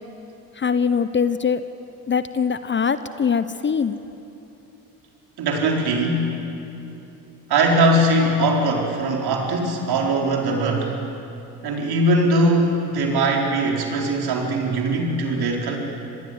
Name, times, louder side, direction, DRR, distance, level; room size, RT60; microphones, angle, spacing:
voice 1, 0.5-1.6 2.1-4.0, left 6 dB, 25° left, 13 dB, 0.9 m, -22 dB
voice 2, 5.4-6.3 7.5-11.0 11.6-15.8, right 1 dB, 55° right, 0 dB, 4.7 m, -21 dB
26.0 x 20.0 x 8.1 m, 2.9 s
hypercardioid pair, 60°, 47 cm